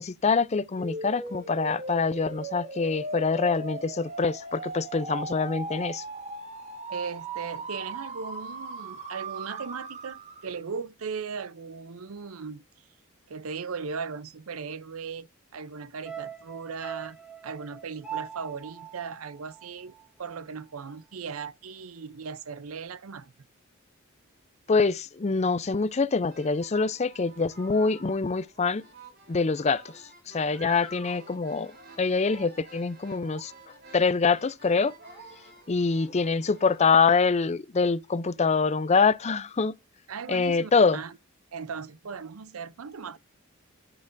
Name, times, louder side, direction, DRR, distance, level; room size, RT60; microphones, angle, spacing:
voice 1, 0.0-6.0 24.7-28.8 29.3-29.9 30.3-31.7 32.0-33.5 33.9-34.9 35.7-39.7 40.3-41.0, left 4 dB, 30° left, 0.5 m, -25 dB
sound 1, 0.8-10.6, right 3 dB, 30° right, 1.4 m, -38 dB
voice 2, 6.9-12.6 13.3-17.2 17.4-19.9 20.2-23.3 40.1-41.2 41.5-43.2, right 5 dB, 80° right, 0.6 m, -38 dB
sound 2, 16.0-20.4 20.7-20.8, right 8 dB, 5° right, 2.2 m, -41 dB
sound 3, 26.2-36.9, right 3 dB, 50° right, 3.6 m, -50 dB
10.5 x 8.8 x 2.6 m
head